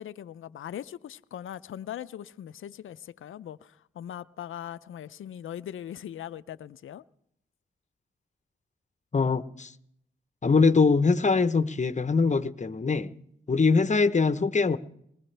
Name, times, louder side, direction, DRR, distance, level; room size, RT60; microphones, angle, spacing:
voice 1, 0.0-7.0, left 10 dB, 75° left, 0.6 m, -40 dB
voice 2, 9.1-9.7 10.4-13.1 13.5-14.8, left 4 dB, 35° left, 0.9 m, -23 dB
20.5 x 20.5 x 3.4 m
cardioid pair, 50°, 21 cm